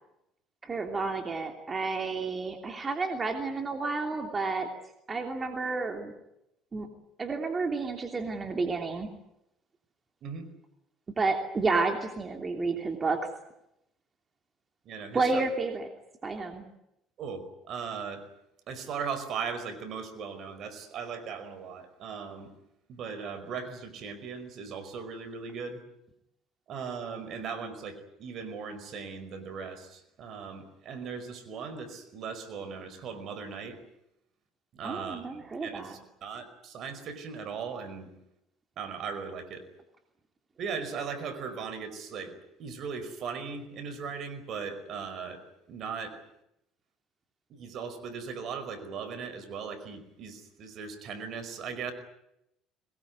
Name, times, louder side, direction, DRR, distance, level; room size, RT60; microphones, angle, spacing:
voice 1, 0.6-4.7 5.1-6.1 6.7-6.9 7.2-9.1 11.2-13.2 15.1-15.9 16.2-16.6 34.8-35.9, right 3 dB, 25° right, 4 dB, 3.0 m, -30 dB
voice 2, 14.8-15.4 17.2-18.2 18.7-22.5 22.9-25.8 26.7-33.8 34.7-38.1 38.8-39.6 40.6-45.4 45.7-46.2 47.5-51.9, right 6 dB, 55° right, 10 dB, 5.0 m, -38 dB
22.5 x 21.0 x 9.6 m, 0.84 s
supercardioid pair, 100°, 0 cm